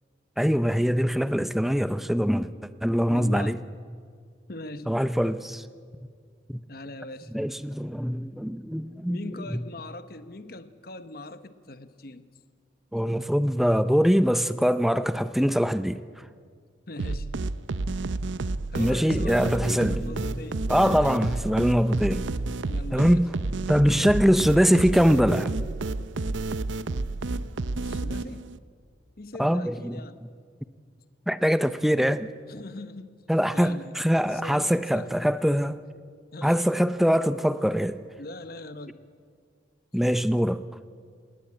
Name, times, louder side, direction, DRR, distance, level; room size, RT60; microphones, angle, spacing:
voice 1, 0.4-2.5 2.8-3.6 4.9-5.6 6.5-6.6 7.3-9.2 9.5-9.6 12.9-16.0 18.8-20.4 20.7-22.2 22.9-23.3 23.7-25.6 29.4-30.0 31.3-32.3 33.3-35.8 36.4-38.0 39.9-40.6, equal, ahead, 0.5 m, -23 dB
voice 2, 3.0-3.6 4.5-5.0 6.7-7.3 9.1-12.2 16.9-17.3 18.7-21.2 22.7-23.2 23.8-24.1 27.8-28.5 29.2-30.2 32.5-33.1 33.5-34.0 34.3-35.3 36.3-36.6 38.2-39.0, left 2 dB, 50° left, 1.0 m, -41 dB
sound 1, 17.0-28.6, right 3 dB, 80° right, 0.6 m, -30 dB
20.0 x 18.5 x 8.8 m
head